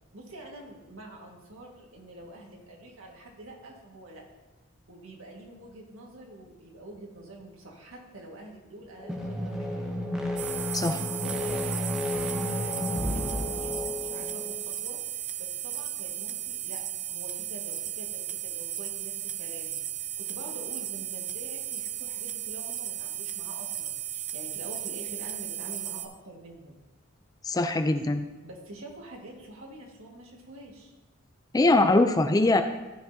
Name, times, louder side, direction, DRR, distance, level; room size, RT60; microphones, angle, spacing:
voice 1, 0.1-4.2 4.9-9.8 10.9-16.8 17.1-26.8 28.4-30.9, right 1 dB, 80° right, -1 dB, 1.8 m, -46 dB
sound 1, 9.0-14.6, left 1 dB, 5° right, 0.9 m, -32 dB
sound 2, 10.4-26.1, right 12 dB, 40° right, 0.5 m, -35 dB
voice 2, 27.4-28.3 31.5-32.6, left 2 dB, 20° left, 8 dB, 0.4 m, -22 dB
13.0 x 5.9 x 2.8 m, 1.1 s
head